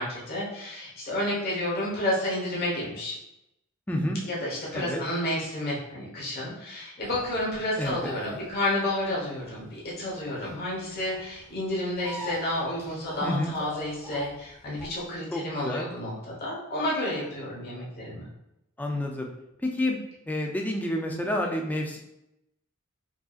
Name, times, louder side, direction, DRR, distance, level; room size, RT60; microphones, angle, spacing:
voice 1, 0.0-3.1 4.3-18.3, left 1 dB, 50° left, -5 dB, 1.2 m, -31 dB
voice 2, 3.9-4.2 4.7-5.0 7.8-8.1 13.2-13.6 15.3-15.9 18.8-19.3 19.6-20.0 20.3-22.0, left 1 dB, 10° left, 1 dB, 0.4 m, -29 dB
sound 1, 7.0-15.1, left 1 dB, 15° right, 1.0 m, -42 dB
4.6 x 2.8 x 2.4 m, 0.86 s
head